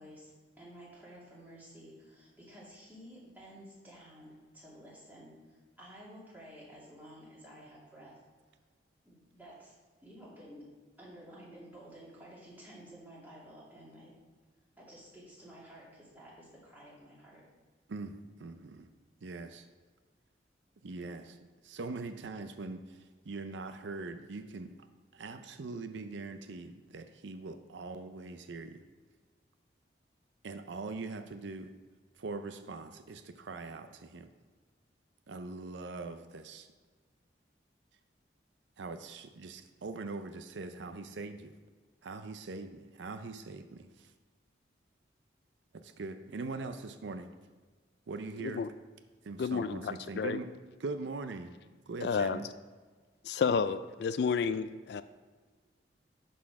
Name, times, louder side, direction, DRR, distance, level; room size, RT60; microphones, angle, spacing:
voice 1, 0.0-8.2 9.0-9.7 10.0-10.6 11.0-14.1 14.8-17.4, equal, 10° right, 2.4 m, -52 dB
voice 2, 17.9-18.9 19.2-19.7 20.8-24.7 25.1-28.8 30.4-31.7 32.2-34.3 35.3-36.7 38.8-41.5 42.0-44.1 45.7-47.3 48.1-48.7 49.2-50.5 50.8-51.5 51.9-52.5, right 3 dB, 75° right, 0.5 m, -42 dB
voice 3, 49.4-50.4 52.0-52.4 53.3-55.0, left 5 dB, 60° left, 0.3 m, -31 dB
11.5 x 4.2 x 4.7 m
head